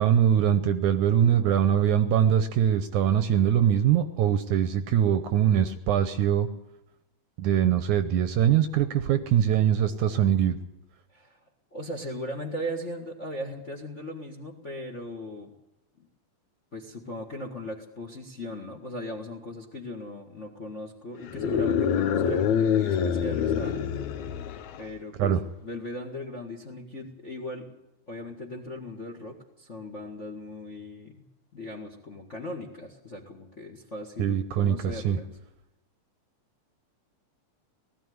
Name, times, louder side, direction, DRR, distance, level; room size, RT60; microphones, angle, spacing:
voice 1, 0.0-6.5 7.4-10.6 25.2-25.4 34.2-35.2, right 9 dB, 70° right, 10 dB, 2.0 m, -22 dB
voice 2, 11.7-15.5 16.0-16.1 16.7-23.8 24.8-27.7 28.1-31.2 31.5-35.3, left 1 dB, 35° left, 4 dB, 1.3 m, -38 dB
sound 1, 21.3-24.9, left 7 dB, 70° left, 2.0 m, -26 dB
19.0 x 14.0 x 9.5 m, 0.89 s
omnidirectional pair, 4.0 m